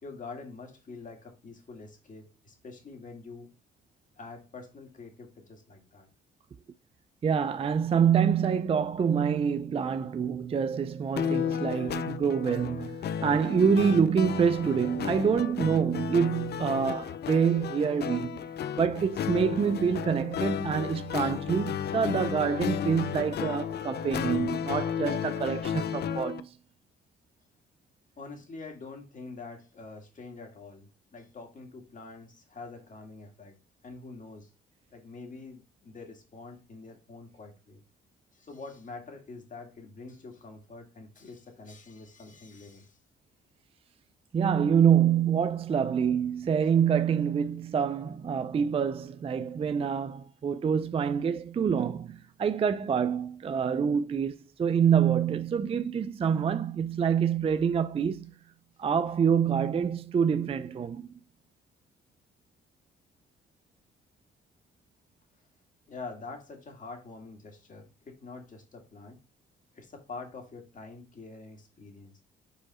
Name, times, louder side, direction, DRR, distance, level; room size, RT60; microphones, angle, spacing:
voice 1, 0.0-3.5 4.2-6.1 28.2-33.6 33.8-34.5 34.9-37.8 38.3-43.0 65.9-69.2 69.7-72.2, left 3 dB, 40° left, 2.0 m, -45 dB
voice 2, 7.2-18.4 18.8-26.6 44.3-58.3 58.8-61.1, right 7 dB, 30° right, 0.4 m, -26 dB
sound 1, 11.2-26.4, left 8 dB, 55° left, 0.6 m, -33 dB
5.0 x 4.6 x 4.2 m
cardioid pair, 90°, 20 cm